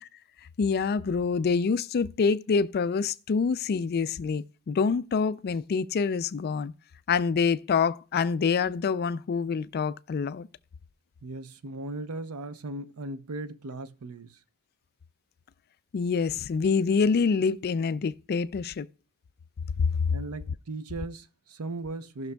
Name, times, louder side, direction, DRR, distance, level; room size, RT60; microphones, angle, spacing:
voice 1, 0.6-6.7 7.1-10.5 15.9-18.9, left 5 dB, 45° left, 0.3 m, -26 dB
voice 2, 11.2-14.4 20.1-22.3, right 2 dB, 75° right, 0.7 m, -37 dB
17.5 x 6.1 x 2.3 m
head